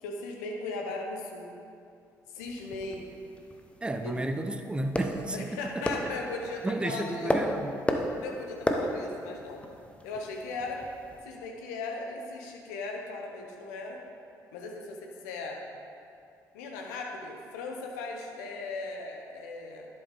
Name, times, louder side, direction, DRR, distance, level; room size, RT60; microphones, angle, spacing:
voice 1, 0.0-1.5 2.3-3.1 4.0-4.2 5.3-7.3 8.2-9.6 10.0-10.8 11.2-14.0 14.5-15.6 16.5-19.9, left 3 dB, 75° left, 1 dB, 1.0 m, -38 dB
sound 1, 2.4-11.2, left 1 dB, 10° left, 1.0 m, -35 dB
voice 2, 3.8-5.8 6.6-7.7, right 1 dB, 10° right, 7 dB, 0.6 m, -32 dB
11.0 x 7.8 x 3.6 m, 2.4 s
figure-of-eight pair, 45°, 9 cm